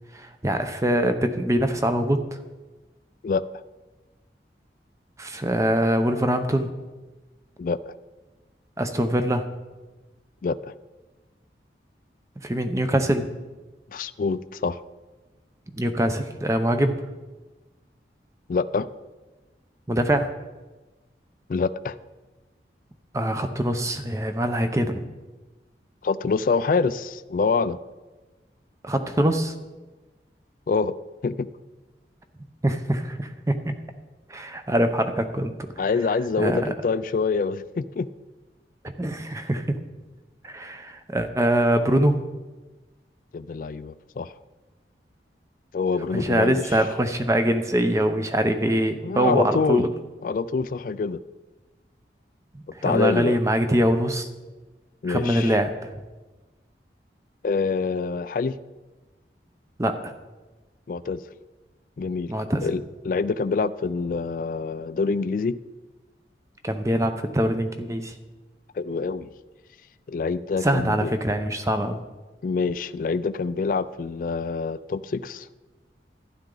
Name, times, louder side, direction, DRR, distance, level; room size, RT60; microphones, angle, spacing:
voice 1, 0.1-2.2 5.2-6.7 8.8-9.5 12.4-13.3 15.7-16.9 19.9-20.3 23.1-25.0 28.8-29.5 32.6-33.7 34.3-35.5 36.4-36.7 38.8-39.8 40.4-42.2 46.1-49.9 52.5-54.3 55.1-55.9 59.8-60.1 62.3-62.7 66.6-68.1 70.6-72.0, right 1 dB, 15° right, 8 dB, 0.7 m, -23 dB
voice 2, 7.6-7.9 10.4-10.6 13.9-14.8 18.5-18.9 21.5-21.9 26.0-27.8 30.7-31.0 31.2-31.5 35.8-38.1 43.3-44.3 45.7-46.8 49.0-49.9 50.2-51.2 52.8-53.4 55.0-55.6 57.4-58.6 60.9-61.2 62.0-62.3 62.6-65.6 68.8-69.3 70.1-71.1 72.4-75.5, left 4 dB, 50° left, 14 dB, 0.3 m, -26 dB
12.0 x 10.5 x 3.9 m, 1.2 s
head